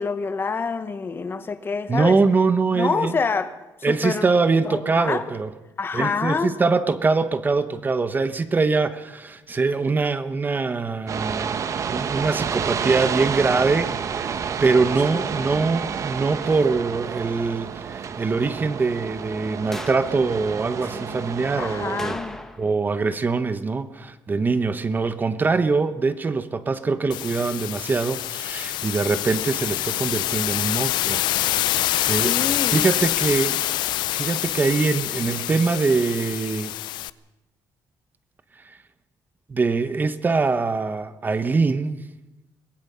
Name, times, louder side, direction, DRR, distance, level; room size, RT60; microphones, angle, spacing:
voice 1, 0.0-2.2 2.7-3.5 3.9-4.3 4.7-5.3 5.8-6.6 15.1-15.7 20.9-21.3 21.6-22.4 32.2-32.8, left 5 dB, 30° left, 1.2 m, -27 dB
voice 2, 1.9-3.2 3.8-5.5 5.9-22.2 22.6-31.2 31.7-31.8 32.1-32.4 32.7-33.6 34.1-36.7 39.5-42.0, right 4 dB, 25° right, 1.1 m, -23 dB
sound 1, 11.1-22.2, right 7 dB, 45° right, 1.2 m, -29 dB
sound 2, 19.7-20.2 22.0-22.8 23.1-23.2 28.2-28.3, left 1 dB, 5° left, 1.6 m, -36 dB
sound 3, 27.1-37.1, left 14 dB, 85° left, 0.6 m, -26 dB
23.5 x 20.0 x 5.7 m
cardioid pair, 130°, 7 cm